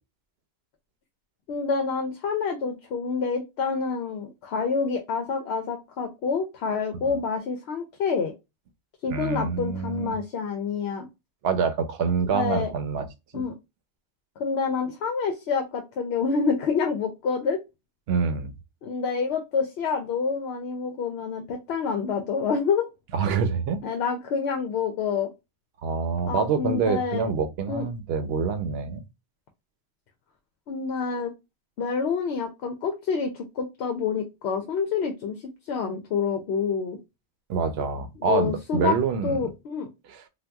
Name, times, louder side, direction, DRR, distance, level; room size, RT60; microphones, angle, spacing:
voice 1, 1.5-8.3 9.0-11.1 12.3-12.7 13.3-13.5 14.4-17.6 18.8-22.9 23.8-25.3 26.3-27.3 27.7-27.9 30.7-31.3 31.8-35.4 35.7-37.0 38.2-39.0 39.2-39.9, left 5 dB, 75° left, 0.9 m, -27 dB
voice 2, 9.1-10.1 11.4-13.1 13.3-13.4 18.1-18.5 23.1-23.8 25.8-29.0 37.5-39.4 40.1-40.2, right 6 dB, 75° right, 0.8 m, -26 dB
2.8 x 2.2 x 3.4 m
omnidirectional pair, 1.1 m